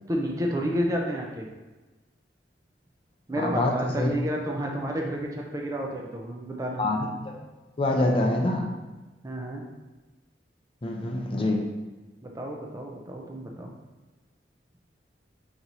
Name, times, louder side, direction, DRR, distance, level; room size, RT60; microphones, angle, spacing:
voice 1, 0.1-1.5 3.3-6.8 9.2-9.6 12.2-13.7, equal, 20° right, 0 dB, 0.4 m, -30 dB
voice 2, 3.4-4.1 6.8-7.4 7.8-8.7 10.8-11.6, left 1 dB, 30° left, 1 dB, 0.6 m, -25 dB
3.9 x 3.0 x 4.1 m, 1.2 s
head